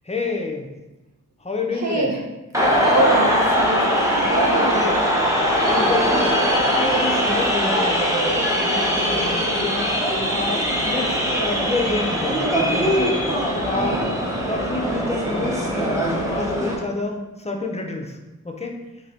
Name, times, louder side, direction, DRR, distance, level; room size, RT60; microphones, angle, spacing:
voice 1, 0.0-0.7 1.4-2.1 5.7-6.4 6.7-10.1 10.3-12.4 12.8-13.2 13.6-14.0 14.3-18.2 18.4-18.7, left 3 dB, 20° left, 2 dB, 0.6 m, -28 dB
voice 2, 1.8-2.2 2.8-5.0 13.7-14.1, right 2 dB, 50° right, 0 dB, 0.6 m, -24 dB
sound 1, 2.5-16.7, equal, 10° right, 0.9 m, -21 dB
3.2 x 2.6 x 3.3 m, 1.0 s
cardioid pair, 50°, 35 cm